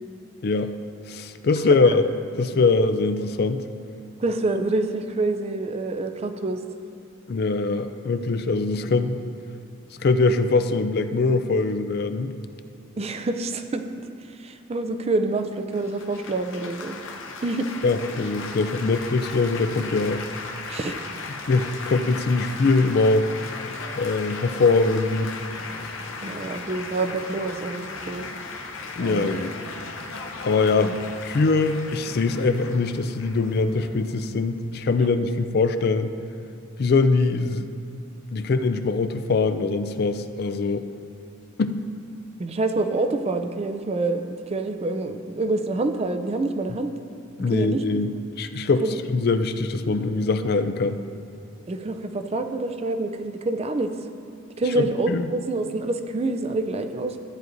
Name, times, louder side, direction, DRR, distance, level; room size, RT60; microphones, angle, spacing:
voice 1, 0.4-0.7 1.1-2.1 2.4-3.6 7.3-9.2 10.0-12.3 17.8-20.2 21.5-23.3 24.0-25.3 25.8-25.9 29.0-29.5 30.4-31.0 31.2-36.1 36.8-37.7 38.3-40.9 41.6-41.8 47.4-48.8 49.1-51.0 54.8-55.3, left 3 dB, 50° left, 9 dB, 0.4 m, -22 dB
voice 2, 4.2-6.6 13.0-17.0 17.4-17.7 20.7-21.0 26.2-28.3 29.0-29.4 30.8-30.9 35.0-35.1 42.4-46.9 47.5-47.8 48.8-49.0 51.7-53.9 54.6-57.2, right 2 dB, 30° right, 7 dB, 0.4 m, -27 dB
Laughter / Applause / Chatter, 15.7-34.8, left 3 dB, 70° left, 0.8 m, -37 dB
13.5 x 9.1 x 2.6 m, 2.6 s
head